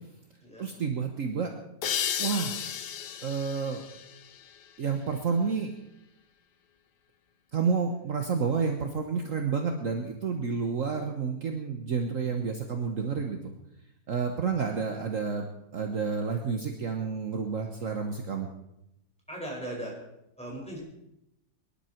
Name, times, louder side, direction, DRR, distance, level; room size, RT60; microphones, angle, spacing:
voice 1, 0.6-1.5 2.2-2.6 3.2-3.8 4.8-5.7 7.5-13.4 14.1-15.5 15.7-18.5, right 5 dB, 55° right, 4 dB, 1.5 m, -30 dB
sound 1, 1.8-5.2, left 9 dB, 85° left, 1.5 m, -34 dB
voice 2, 19.3-19.9 20.4-20.8, right 1 dB, 5° left, -3 dB, 5.5 m, -38 dB
24.0 x 11.5 x 4.5 m, 0.84 s
omnidirectional pair, 1.8 m